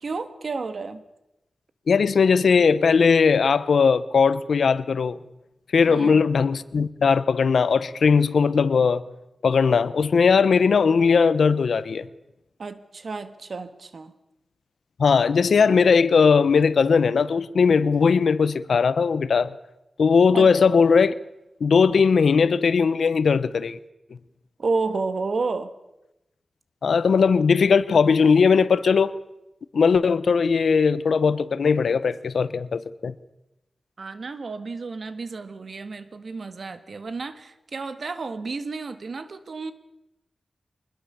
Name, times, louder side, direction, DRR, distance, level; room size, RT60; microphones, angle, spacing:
voice 1, 0.0-1.0 5.9-6.3 12.6-14.1 20.3-20.5 24.6-25.7 34.0-39.7, right 4 dB, 60° right, 1.7 m, -31 dB
voice 2, 1.9-5.2 5.7-9.0 9.4-12.1 15.0-19.5 20.0-21.1 21.6-23.8 26.8-29.1 29.7-33.1, left 5 dB, 90° left, 0.9 m, -19 dB
24.0 x 20.5 x 6.9 m
wide cardioid pair, 115°, 0 cm